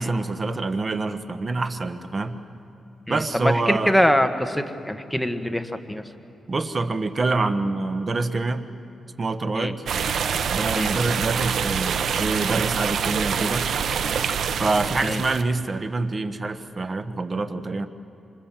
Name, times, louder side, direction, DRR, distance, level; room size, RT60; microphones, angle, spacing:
voice 1, 0.0-2.4 3.1-4.0 6.5-8.7 9.2-9.8 10.4-13.7 14.6-17.9, right 3 dB, 35° right, 10 dB, 1.2 m, -26 dB
voice 2, 3.1-6.0 9.5-9.7 10.7-10.9 15.0-15.2, equal, 5° left, 7 dB, 1.4 m, -23 dB
sound 1, 9.9-15.4, right 7 dB, 75° right, 0.9 m, -25 dB
26.5 x 26.0 x 7.5 m, 2.8 s
cardioid pair, 100°, 0 cm